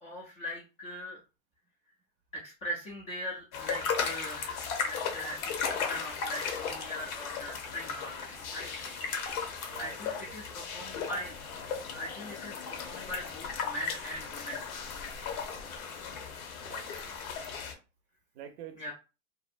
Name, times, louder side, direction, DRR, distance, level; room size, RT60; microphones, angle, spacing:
voice 1, 0.0-1.2 2.3-8.9 9.8-11.3 11.9-14.6 18.8-18.9, equal, 15° left, 0.3 m, -40 dB
sound 1, 3.5-17.7, left 6 dB, 75° left, 0.8 m, -36 dB
voice 2, 9.6-10.6 16.6-16.9 18.3-18.9, right 8 dB, 50° right, 0.5 m, -48 dB
2.6 x 2.1 x 2.4 m
supercardioid pair, 130°, 43 cm